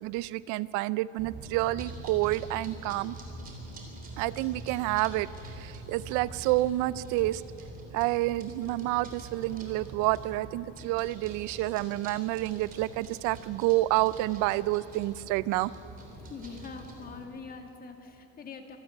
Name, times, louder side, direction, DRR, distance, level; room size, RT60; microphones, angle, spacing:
voice 1, 0.0-3.1 4.2-5.3 5.6-7.4 7.9-15.7, right 17 dB, 75° right, 18 dB, 0.5 m, -29 dB
sound 1, 1.2-17.2, right 1 dB, 30° right, 3.4 m, -45 dB
voice 2, 16.1-18.8, left 5 dB, 30° left, 4 dB, 2.0 m, -43 dB
25.0 x 12.5 x 8.8 m, 3.0 s
cardioid pair, 140°, 30 cm